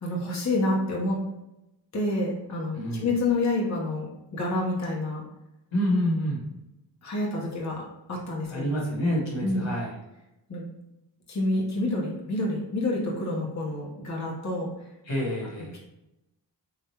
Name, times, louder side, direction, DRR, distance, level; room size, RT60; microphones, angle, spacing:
voice 1, 0.0-1.2 1.9-5.3 7.0-8.6 9.4-9.7 10.5-10.6 11.3-14.7, left 2 dB, 35° left, -3 dB, 0.9 m, -28 dB
voice 2, 2.7-3.1 5.7-6.5 8.5-9.9 15.1-15.7, equal, 80° left, -4 dB, 1.3 m, -27 dB
3.3 x 2.3 x 2.8 m, 0.90 s
cardioid pair, 40°, 45 cm